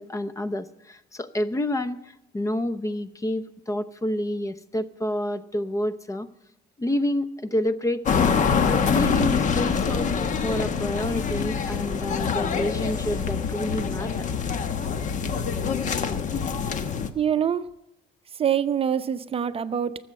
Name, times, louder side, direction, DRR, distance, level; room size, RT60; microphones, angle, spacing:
voice 1, 0.0-6.3 6.8-8.4 8.7-14.3 15.6-15.7, left 1 dB, 20° left, 13 dB, 0.8 m, -29 dB
sound 1, 8.1-17.1, left 6 dB, 45° left, 1.3 m, -25 dB
voice 2, 17.1-17.6 18.4-20.0, right 8 dB, 35° right, 11 dB, 0.7 m, -25 dB
18.5 x 7.8 x 7.6 m, 0.82 s
cardioid pair, 110°, 17 cm